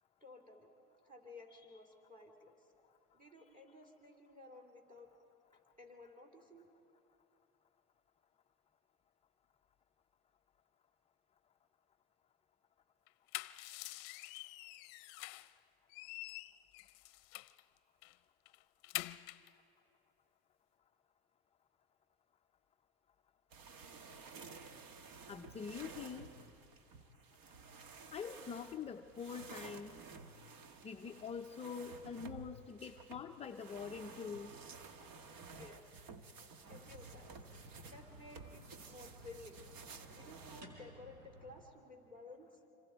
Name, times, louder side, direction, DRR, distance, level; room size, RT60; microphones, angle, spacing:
voice 1, 0.2-0.7 1.0-2.6 3.1-5.1 5.5-6.7 34.8-35.2 35.6-36.1 36.7-37.4 37.8-39.6 40.1-42.7, left 2 dB, 15° right, 1 dB, 3.2 m, -56 dB
sound 1, 13.1-15.6 15.9-17.6 18.0-18.2 18.5-19.5, left 20 dB, 60° left, 0.7 m, -46 dB
sound 2, 23.5-40.6, right 4 dB, 45° right, 1.4 m, -54 dB
voice 2, 25.3-26.3 28.1-30.0 30.8-34.5, left 6 dB, 15° left, 4 dB, 0.5 m, -45 dB
sound 3, 36.6-41.6, right 1 dB, 90° right, 4.2 m, -57 dB
26.5 x 25.5 x 4.6 m, 2.7 s
hypercardioid pair, 110°, 47 cm